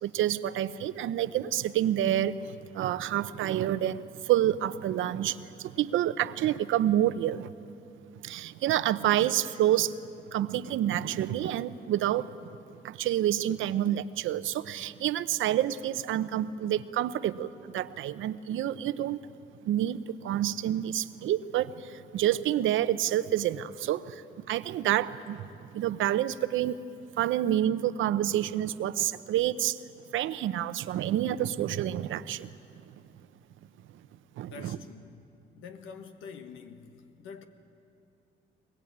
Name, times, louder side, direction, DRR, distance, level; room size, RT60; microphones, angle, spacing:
voice 1, 0.0-7.5 8.2-10.0 10.3-12.4 12.8-17.5 17.7-19.2 19.6-25.5 25.7-26.8 27.2-29.8 30.1-32.5 34.4-34.8, right 12 dB, 80° right, 0.8 m, -28 dB
voice 2, 34.5-35.2 35.5-37.5, left 6 dB, 85° left, 1.6 m, -46 dB
22.5 x 21.0 x 8.8 m
cardioid pair, 90°, 20 cm